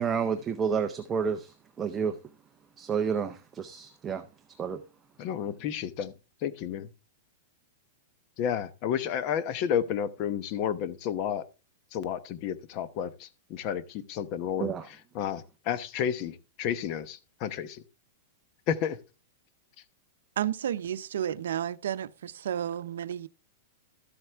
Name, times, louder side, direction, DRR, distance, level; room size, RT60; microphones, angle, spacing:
voice 1, 0.0-2.2 2.8-4.2 4.6-4.8 14.6-14.9, right 6 dB, 15° right, 0.6 m, -30 dB
voice 2, 5.2-6.1 6.4-6.9 8.4-11.4 11.9-17.8 18.7-19.0, left 9 dB, 35° left, 0.9 m, -31 dB
voice 3, 20.4-23.3, right 10 dB, 85° right, 0.6 m, -32 dB
13.0 x 7.8 x 3.4 m
supercardioid pair, 165°, 0 cm